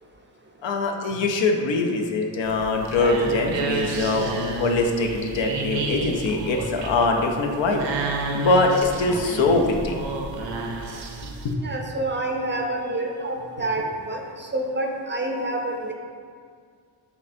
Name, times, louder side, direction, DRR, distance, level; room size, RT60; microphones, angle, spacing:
voice 1, 0.6-7.8 8.3-10.0 11.2-11.5, left 3 dB, 80° left, 3 dB, 0.6 m, -23 dB
sound 1, 2.4-11.5, right 3 dB, 80° right, 0.6 m, -31 dB
voice 2, 11.6-15.9, right 2 dB, 30° right, 1 dB, 0.4 m, -28 dB
6.3 x 2.7 x 2.5 m, 2.1 s
wide cardioid pair, 95°, 44 cm